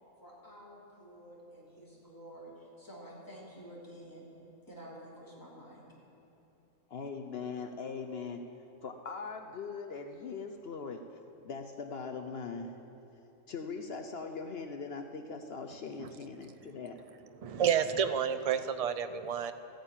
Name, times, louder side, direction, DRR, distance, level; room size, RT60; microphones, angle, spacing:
voice 1, 0.2-4.3 4.7-5.8, equal, 15° left, -6 dB, 3.1 m, -50 dB
voice 2, 6.9-8.4 8.8-11.0 11.4-12.7 13.5-17.0, left 5 dB, 55° left, 6 dB, 0.9 m, -40 dB
voice 3, 17.4-19.5, right 8 dB, 55° right, 10 dB, 0.4 m, -30 dB
14.5 x 9.1 x 8.8 m, 2.9 s
omnidirectional pair, 1.4 m